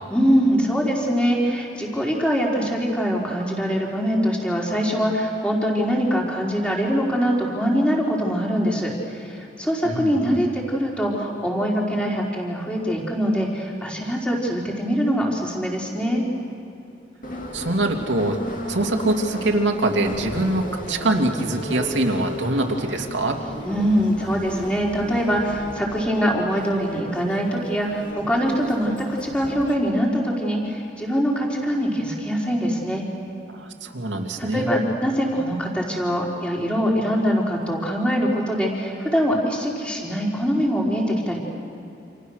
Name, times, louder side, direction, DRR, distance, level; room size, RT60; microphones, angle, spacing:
voice 1, 0.1-16.2 23.6-33.0 34.4-41.4, equal, 5° left, -2 dB, 4.0 m, -23 dB
voice 2, 9.8-10.4 17.5-18.4 18.7-23.4 33.5-34.7, right 2 dB, 80° right, 2 dB, 2.6 m, -24 dB
Subway metro underground, 17.2-29.7, left 1 dB, 45° left, 2.9 m, -34 dB
28.5 x 27.5 x 6.5 m, 2.8 s
head